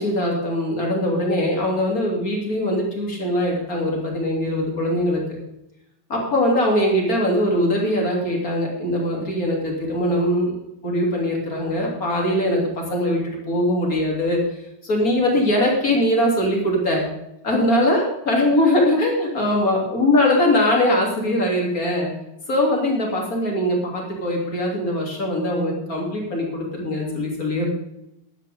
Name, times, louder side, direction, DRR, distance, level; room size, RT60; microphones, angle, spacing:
voice 1, 0.0-5.2 6.1-10.6 10.8-14.4 14.8-17.0 17.4-22.1 22.5-27.7, left 1 dB, 25° left, -1 dB, 2.4 m, -21 dB
14.5 x 11.5 x 3.6 m, 0.83 s
omnidirectional pair, 5.2 m